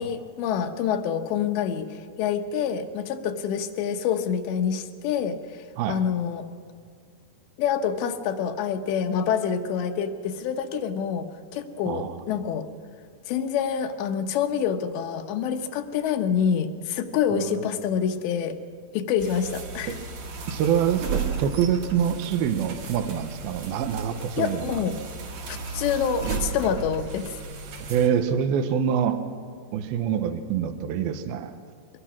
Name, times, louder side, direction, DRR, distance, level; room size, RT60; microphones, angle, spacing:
voice 1, 0.0-6.5 7.6-12.7 13.3-18.6 18.9-20.0 24.4-25.0 25.5-27.4, left 7 dB, 85° left, 7 dB, 3.2 m, -27 dB
voice 2, 11.9-12.2 17.3-17.7 19.9-20.0 20.5-24.8 27.9-29.2 29.7-31.5, right 8 dB, 75° right, 8 dB, 2.5 m, -25 dB
sound 1, 19.2-28.1, right 5 dB, 50° right, 2.7 m, -34 dB
23.5 x 20.0 x 6.0 m, 2.2 s
omnidirectional pair, 5.0 m